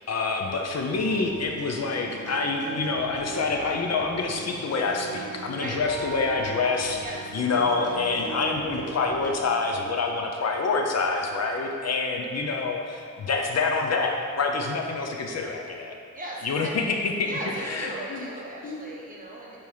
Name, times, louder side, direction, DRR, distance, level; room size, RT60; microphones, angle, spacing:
voice 1, 0.0-7.0 7.3-16.0 16.4-17.3 17.6-18.2 18.6-18.8, left 4 dB, 60° left, 2 dB, 0.6 m, -27 dB
sound 1, 0.9-9.4, right 4 dB, 55° right, 1.0 m, -38 dB
voice 2, 16.1-16.9 17.2-19.7, right 1 dB, 30° right, -5 dB, 1.2 m, -37 dB
4.8 x 4.4 x 5.4 m, 2.2 s
wide cardioid pair, 170°, 30 cm